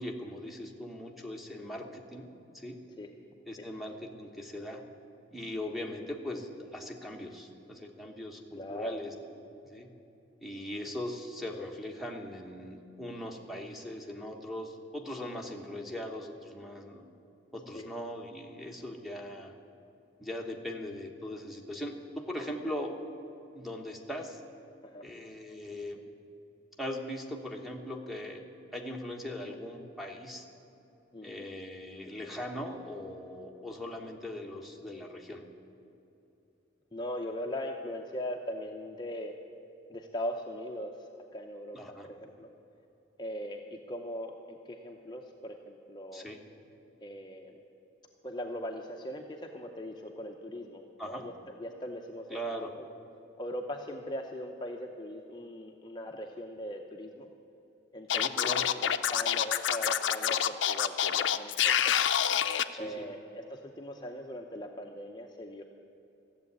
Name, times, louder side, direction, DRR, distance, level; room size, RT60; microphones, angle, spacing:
voice 1, 0.0-2.8 3.5-4.8 5.3-9.1 9.6-9.9 10.4-17.1 17.5-19.5 20.2-22.9 23.5-24.4 25.0-26.0 26.8-28.4 28.7-30.4 31.2-35.4 41.7-42.1 46.1-46.4 51.0-51.3 52.3-52.7 58.1-58.7 62.7-63.0, left 1 dB, ahead, 2 dB, 1.2 m, -40 dB
voice 2, 8.5-9.0 10.5-10.6 17.7-17.9 24.8-25.0 31.1-31.5 36.9-39.3 39.9-41.8 42.0-42.5 43.2-46.3 47.0-47.6 48.2-52.9 53.4-57.3 57.9-61.9 62.8-65.6, left 1 dB, 25° left, 2 dB, 0.6 m, -40 dB
Scratching (performance technique), 58.1-62.6, left 9 dB, 75° left, 0.5 m, -27 dB
14.0 x 7.7 x 9.5 m, 2.9 s
head